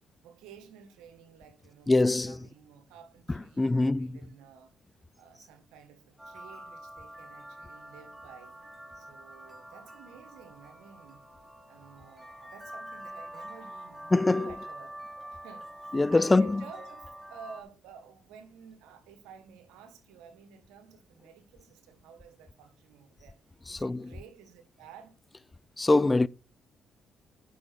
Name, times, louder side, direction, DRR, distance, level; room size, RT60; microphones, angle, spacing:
voice 1, 0.2-4.7 5.2-8.5 9.0-11.2 11.6-23.4 23.7-25.1, right 7 dB, 85° right, 1.5 m, -52 dB
voice 2, 1.9-2.4 3.6-4.2 14.1-14.5 15.9-16.6 23.7-24.0 25.8-26.3, left 2 dB, 20° left, 0.4 m, -23 dB
sound 1, 6.2-17.6, right 1 dB, 10° right, 3.0 m, -45 dB
8.5 x 6.1 x 6.0 m
supercardioid pair, 65°, 0 cm